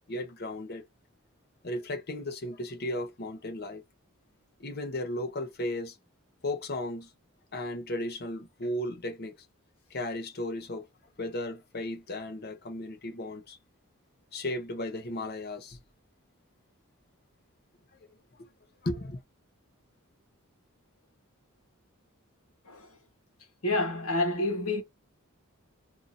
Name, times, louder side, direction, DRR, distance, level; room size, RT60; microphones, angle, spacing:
voice 1, 0.1-0.8 1.6-3.8 4.6-6.0 6.4-7.1 7.5-9.3 9.9-10.9 11.2-13.6 14.3-15.8 18.0-18.1 18.4-18.5 18.8-19.2, left 1 dB, 50° left, 0.9 m, -35 dB
voice 2, 23.6-24.8, left 2 dB, 90° left, 1.2 m, -28 dB
2.7 x 2.5 x 4.1 m
head